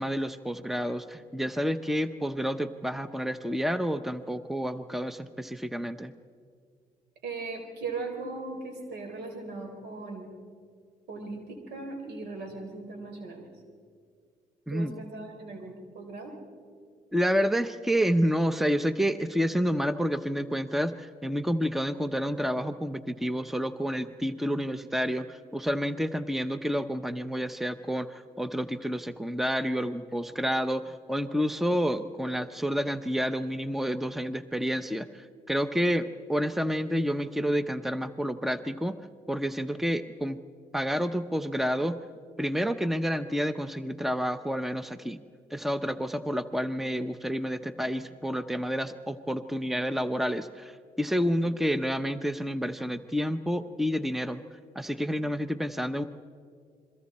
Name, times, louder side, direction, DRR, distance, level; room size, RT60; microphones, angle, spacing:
voice 1, 0.0-6.1 14.7-14.9 17.1-39.0 39.3-40.4 40.7-42.0 42.4-45.2 45.5-54.4 54.7-56.0, equal, ahead, 12 dB, 0.9 m, -29 dB
voice 2, 7.2-10.3 11.1-13.5 14.7-16.3, right 3 dB, 80° right, 4 dB, 3.9 m, -38 dB
28.5 x 23.0 x 4.3 m, 2.1 s
supercardioid pair, 60°, 17 cm